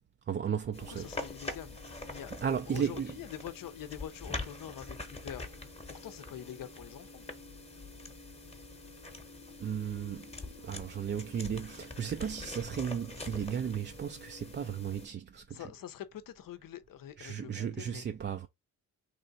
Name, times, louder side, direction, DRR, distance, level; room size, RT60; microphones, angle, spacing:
voice 1, 0.3-1.1 2.4-3.2 9.6-15.7 17.2-18.5, right 8 dB, 30° right, 0.4 m, -35 dB
sound 1, 0.7-15.1, left 2 dB, 15° left, 0.9 m, -44 dB
voice 2, 0.8-2.3 2.7-5.5 5.9-7.2 15.5-18.0, left 10 dB, 65° left, 0.7 m, -45 dB
3.2 x 2.5 x 4.0 m
cardioid pair, 65°, 36 cm